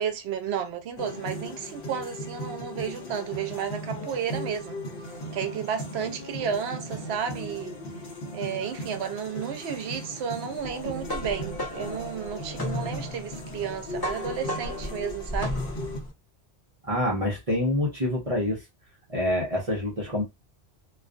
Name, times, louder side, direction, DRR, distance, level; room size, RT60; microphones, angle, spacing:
voice 1, 0.0-4.8 5.3-7.8 8.3-15.6, right 7 dB, 75° right, 0.8 m, -32 dB
sound 1, 1.0-16.0, equal, 60° left, 0.8 m, -37 dB
sound 2, 10.7-16.1, left 1 dB, 25° left, 0.7 m, -34 dB
voice 2, 16.9-18.6 19.1-20.2, left 1 dB, 40° right, 0.7 m, -26 dB
2.4 x 2.3 x 2.4 m
omnidirectional pair, 1.1 m